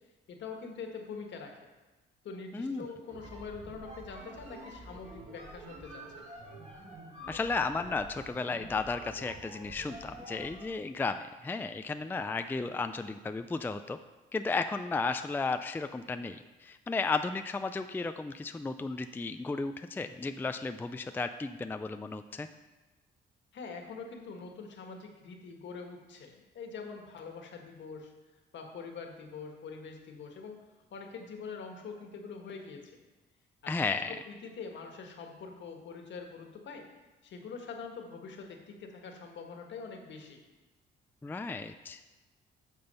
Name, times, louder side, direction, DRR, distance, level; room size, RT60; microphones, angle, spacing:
voice 1, 0.3-1.5 2.2-6.0 23.5-28.1 28.5-30.6 30.9-32.9 33.6-36.8 37.2-40.4, left 5 dB, 65° left, 3 dB, 1.6 m, -44 dB
voice 2, 2.5-2.9 7.3-14.0 14.3-22.5 33.7-34.2 41.2-42.1, left 4 dB, 10° left, 9 dB, 0.4 m, -34 dB
sound 1, 3.0-10.8, right 1 dB, 35° right, 3.1 m, -48 dB
8.6 x 6.1 x 5.6 m, 1.2 s
cardioid pair, 90°, 20 cm